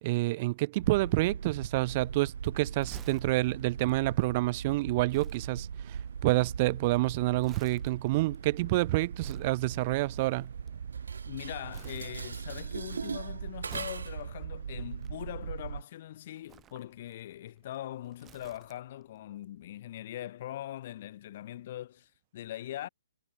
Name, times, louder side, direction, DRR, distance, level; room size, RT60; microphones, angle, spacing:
voice 1, 0.0-10.5, right 20 dB, 35° right, 0.3 m, -28 dB
sound 1, 0.8-15.8, right 7 dB, 70° right, 2.8 m, -40 dB
Crumpling crinkling, 1.7-11.3 11.7-12.7 12.9-15.7 16.4-19.0 19.3-19.4, right 10 dB, 15° right, 6.8 m, -54 dB
Dishes pots and pans, 10.9-14.3, right 5 dB, 85° right, 4.7 m, -41 dB
voice 2, 11.2-22.9, left 13 dB, 45° left, 1.6 m, -41 dB
hypercardioid pair, 150°, 0 cm